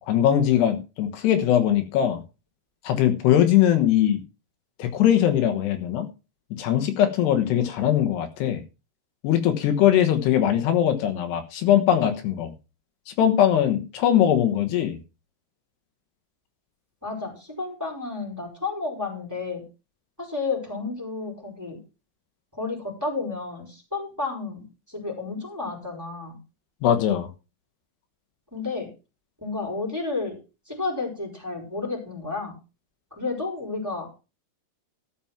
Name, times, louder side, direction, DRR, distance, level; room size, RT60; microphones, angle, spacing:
voice 1, 0.0-2.2 2.9-4.2 4.8-6.1 6.6-8.6 9.2-12.5 13.1-15.0 26.8-27.3, left 10 dB, 80° left, 7 dB, 3.4 m, -21 dB
voice 2, 17.0-19.6 20.2-21.8 22.5-26.4 28.5-28.9 29.4-30.4 30.7-32.6 33.1-34.2, left 3 dB, 5° right, 0 dB, 4.2 m, -31 dB
13.0 x 6.2 x 5.9 m, 0.30 s
omnidirectional pair, 4.8 m